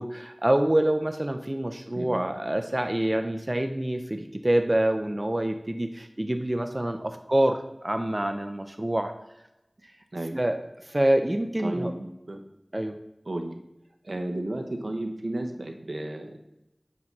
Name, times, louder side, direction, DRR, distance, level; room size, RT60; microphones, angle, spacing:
voice 1, 0.0-9.1 9.8-9.9 10.3-11.9 12.7-13.0, right 1 dB, 30° right, 6 dB, 0.5 m, -26 dB
voice 2, 1.9-2.3 10.1-10.4 11.6-12.4 13.3-13.6 14.0-16.4, right 1 dB, 75° right, 3 dB, 0.8 m, -33 dB
7.5 x 2.7 x 5.9 m, 0.91 s
wide cardioid pair, 45°, 0 cm